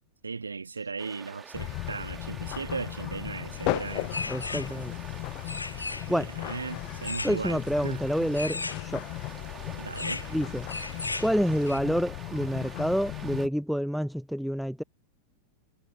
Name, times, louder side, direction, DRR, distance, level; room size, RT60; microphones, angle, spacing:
voice 1, 0.2-4.2 6.1-8.0 9.8-10.2, right 4 dB, 75° right, 2.0 m, -37 dB
sound 1, 1.0-13.5, right 6 dB, 20° right, 2.4 m, -47 dB
sound 2, 1.5-13.5, left 26 dB, 40° left, 0.8 m, -36 dB
sound 3, 3.6-11.8, left 3 dB, 80° left, 0.6 m, -39 dB
voice 2, 4.3-4.9 6.1-6.3 7.2-9.0 10.3-10.7 11.2-14.8, equal, ahead, 0.6 m, -28 dB
figure-of-eight pair, 90°, 0 cm